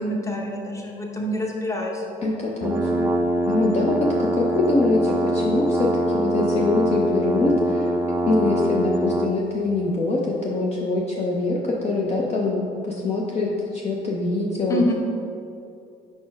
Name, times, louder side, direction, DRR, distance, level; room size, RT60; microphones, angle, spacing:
voice 1, 0.0-2.0 14.7-14.9, left 1 dB, 20° left, -1 dB, 1.0 m, -26 dB
voice 2, 2.2-3.1 3.5-7.9 8.3-14.8, left 2 dB, 40° left, -3 dB, 0.7 m, -24 dB
sound 1, 2.6-9.4, right 1 dB, 10° right, 0.4 m, -23 dB
5.1 x 4.3 x 4.7 m, 2.6 s
cardioid pair, 110°, 17 cm